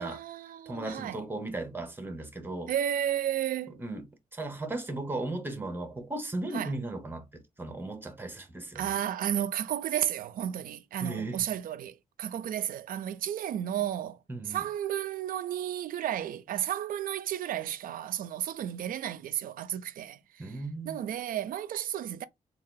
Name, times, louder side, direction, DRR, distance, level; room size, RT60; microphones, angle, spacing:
voice 1, 0.0-1.2 2.7-3.8 6.5-6.7 8.7-14.2 14.5-20.4 20.9-22.2, right 10 dB, 80° right, 0.4 m, -33 dB
voice 2, 0.7-2.7 3.7-4.1 4.3-8.9 11.0-11.4 14.3-14.6 20.4-21.0, right 2 dB, 15° right, 0.8 m, -36 dB
3.6 x 2.4 x 3.8 m
wide cardioid pair, 140°, 14 cm